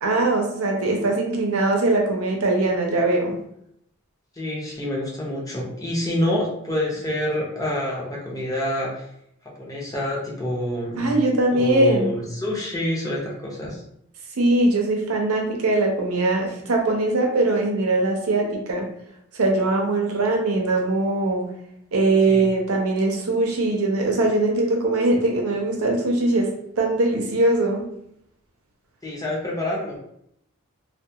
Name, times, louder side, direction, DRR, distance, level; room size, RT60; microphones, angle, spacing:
voice 1, 0.0-3.4 11.0-12.1 14.4-18.9 19.3-21.4 21.9-26.5 26.8-27.9, right 2 dB, 90° right, 1 dB, 0.6 m, -21 dB
voice 2, 4.4-9.1 9.6-11.1 11.5-13.8 22.3-22.5 29.0-30.0, left 1 dB, 15° left, -4 dB, 0.6 m, -27 dB
2.3 x 2.3 x 2.7 m, 0.73 s
head